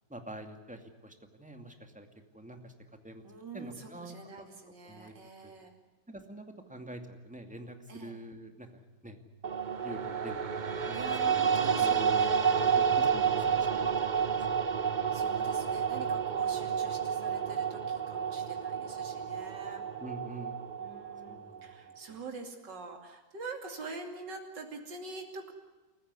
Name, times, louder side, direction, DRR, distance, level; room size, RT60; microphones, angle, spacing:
voice 1, 0.1-2.1 2.3-2.7 3.0-3.2 3.5-4.5 4.9-5.1 5.4-5.5 6.1-6.4 6.7-9.2 9.8-12.3 12.8-13.9 14.6-14.7 20.0-20.6 21.2-21.7 22.1-22.2, right 1 dB, 5° right, 5 dB, 2.4 m, -46 dB
voice 2, 3.2-5.7 7.9-8.1 10.9-12.8 15.1-19.8 20.8-25.5, right 3 dB, 85° right, 3 dB, 3.3 m, -45 dB
sound 1, 9.4-21.7, right 7 dB, 40° right, 0.7 m, -30 dB
29.0 x 15.0 x 9.6 m, 1.2 s
omnidirectional pair, 1.9 m